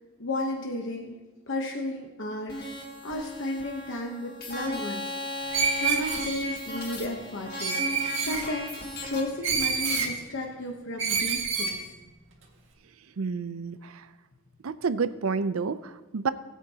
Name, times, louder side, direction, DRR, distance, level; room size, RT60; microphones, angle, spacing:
voice 1, 0.2-1.2 1.5-2.7 3.0-7.8 8.2-8.8 9.0-11.8, left 1 dB, 65° left, 1 dB, 1.1 m, -33 dB
sound 1, 2.5-9.2, left 1 dB, 50° left, 2.1 m, -36 dB
Screech, 5.5-6.5 7.6-8.4 9.4-10.1 11.0-11.8, right 5 dB, 65° right, 2.1 m, -27 dB
voice 2, 13.2-14.0 14.6-16.3, right 5 dB, 85° right, 13 dB, 0.5 m, -29 dB
20.0 x 8.4 x 2.9 m, 1.2 s
head